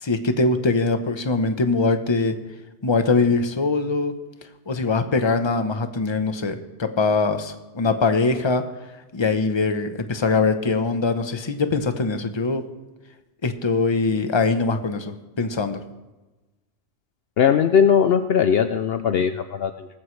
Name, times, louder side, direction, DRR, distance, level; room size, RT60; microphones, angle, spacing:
voice 1, 0.0-2.4 2.8-4.1 4.7-8.6 9.1-12.6 13.4-15.8, left 3 dB, 25° left, 8 dB, 0.9 m, -22 dB
voice 2, 17.4-19.9, left 7 dB, 65° left, 9 dB, 0.8 m, -19 dB
19.0 x 14.5 x 3.3 m, 1.1 s
omnidirectional pair, 1.2 m